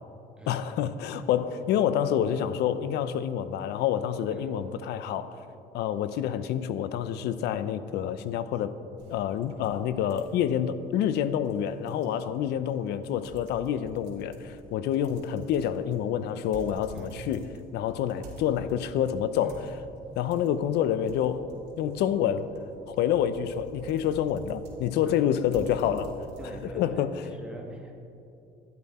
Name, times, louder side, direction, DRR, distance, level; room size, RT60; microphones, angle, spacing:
voice 1, 0.5-5.4 5.7-8.7 9.1-17.5 17.7-19.6 20.2-21.5 21.8-22.5 22.9-26.2 26.8-27.2, left 9 dB, 80° left, 13 dB, 0.6 m, -28 dB
sound 1, 9.0-26.9, right 3 dB, 85° right, 2.5 m, -50 dB
voice 2, 26.4-27.9, right 1 dB, 5° right, 0 dB, 1.7 m, -43 dB
12.5 x 11.0 x 4.2 m, 2.7 s
cardioid pair, 110°, 17 cm